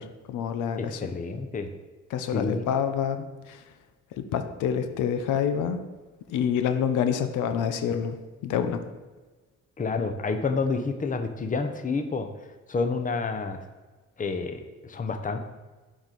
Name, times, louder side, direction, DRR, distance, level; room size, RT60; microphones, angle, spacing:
voice 1, 0.0-1.0 2.1-3.6 4.2-5.8 6.3-8.2 8.4-8.8, left 8 dB, 85° left, 8 dB, 0.7 m, -27 dB
voice 2, 0.8-1.7 2.3-2.6 9.8-12.3 12.7-13.6 14.2-15.4, left 4 dB, 25° left, 7 dB, 0.7 m, -29 dB
7.1 x 4.9 x 4.0 m, 1.2 s
cardioid pair, 90°, 30 cm